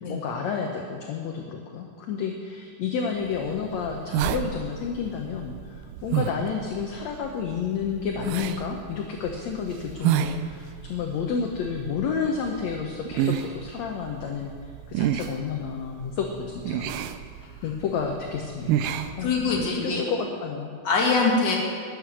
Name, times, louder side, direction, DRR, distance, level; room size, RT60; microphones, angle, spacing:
voice 1, 0.1-14.5 14.9-16.9 17.6-20.7, left 6 dB, 70° left, 2 dB, 1.8 m, -30 dB
sound 1, 3.2-19.8, right 10 dB, 80° right, 2.1 m, -32 dB
voice 2, 19.2-20.0 20.8-21.6, left 4 dB, 35° left, -2 dB, 2.4 m, -23 dB
12.5 x 7.8 x 9.8 m, 2.1 s
omnidirectional pair, 4.1 m